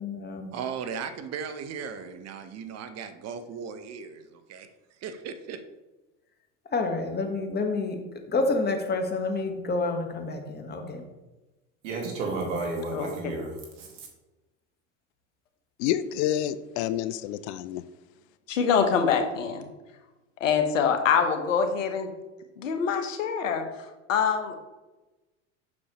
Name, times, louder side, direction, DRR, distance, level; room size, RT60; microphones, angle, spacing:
voice 1, 0.0-0.5 6.7-8.0 8.3-11.0, left 3 dB, 25° left, 4 dB, 1.3 m, -28 dB
voice 2, 0.5-4.7 5.0-5.6, right 6 dB, 45° right, 9 dB, 0.8 m, -37 dB
voice 3, 11.8-14.1, right 3 dB, 75° right, 1 dB, 2.1 m, -32 dB
voice 4, 15.8-17.8, left 11 dB, 60° left, 14 dB, 0.5 m, -28 dB
voice 5, 18.5-19.7 20.4-22.1 22.6-24.6, left 6 dB, 85° left, 6 dB, 1.1 m, -25 dB
7.4 x 6.3 x 3.0 m, 1.1 s
hypercardioid pair, 90°, 37 cm